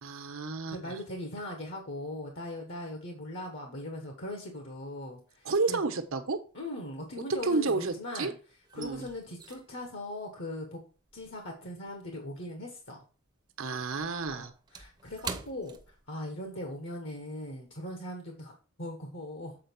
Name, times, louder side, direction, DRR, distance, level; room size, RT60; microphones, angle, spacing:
voice 1, 0.0-1.0 5.4-6.4 7.4-8.3 8.8-9.1 13.6-14.5, right 3 dB, 75° right, 7 dB, 1.1 m, -31 dB
voice 2, 0.7-5.8 6.5-8.3 8.7-10.8 11.1-13.0 14.3-15.8 16.1-19.6, left 1 dB, 60° left, 3 dB, 1.5 m, -40 dB
sound 1, 5.2-5.8 6.1-8.0 8.3-13.0 13.3-16.6 16.9-17.1 17.6-17.8, right 4 dB, 20° right, 0.7 m, -46 dB
7.7 x 4.6 x 4.6 m, 0.36 s
head